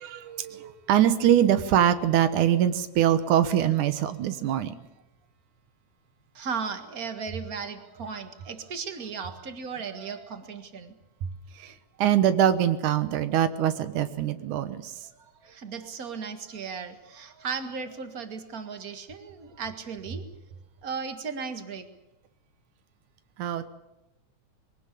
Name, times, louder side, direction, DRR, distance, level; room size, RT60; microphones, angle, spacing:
voice 1, 0.0-4.7 11.6-11.7 12.0-14.8 23.4-23.7, right 10 dB, 85° right, 11 dB, 2.7 m, -23 dB
voice 2, 6.3-11.0 15.0-20.3 20.8-21.9, right 5 dB, 35° right, 8 dB, 1.8 m, -36 dB
23.0 x 17.5 x 8.5 m, 0.97 s
omnidirectional pair, 3.4 m